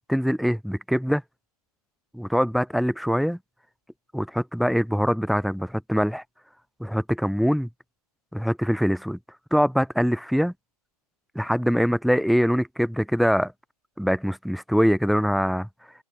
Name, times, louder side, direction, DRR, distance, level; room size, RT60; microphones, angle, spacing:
voice 1, 0.1-1.2 2.1-3.4 4.1-6.2 6.8-7.7 8.3-9.2 9.5-10.5 11.3-13.5 14.0-15.7, equal, ahead, 3.0 m, -23 dB
open air
figure-of-eight pair, 140°, 21 cm